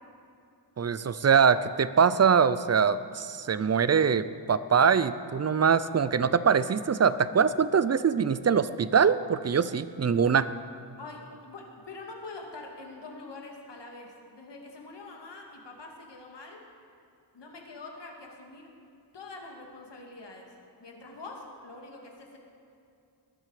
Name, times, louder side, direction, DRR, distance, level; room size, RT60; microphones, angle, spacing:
voice 1, 0.8-10.5, right 6 dB, 35° right, 15 dB, 0.5 m, -23 dB
voice 2, 11.0-16.6 17.3-18.7 19.1-20.5 20.8-22.4, left 3 dB, 70° left, 1 dB, 2.3 m, -45 dB
19.5 x 11.0 x 5.0 m, 2.6 s
wide cardioid pair, 105°, 44 cm